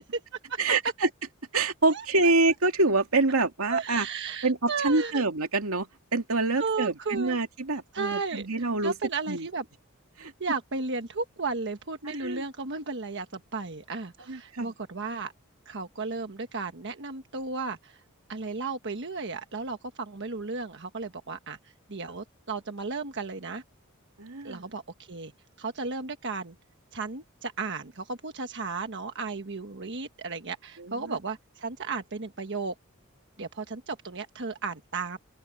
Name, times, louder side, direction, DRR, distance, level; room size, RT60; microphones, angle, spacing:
voice 1, 0.6-1.1 1.5-4.1 4.4-8.9 9.3-9.5 10.2-10.3 12.1-12.4 14.3-14.7 24.2-24.7 30.8-31.2, right 3 dB, 85° right, 2.4 m, -26 dB
voice 2, 1.9-2.3 3.7-5.2 6.6-7.4 7.9-8.5 8.8-9.6 10.2-15.3 15.6-18.0 18.3-21.6 21.9-23.6 24.4-25.3 25.6-26.5 26.9-32.7 33.4-35.2, right 4 dB, 55° right, 1.3 m, -34 dB
open air
head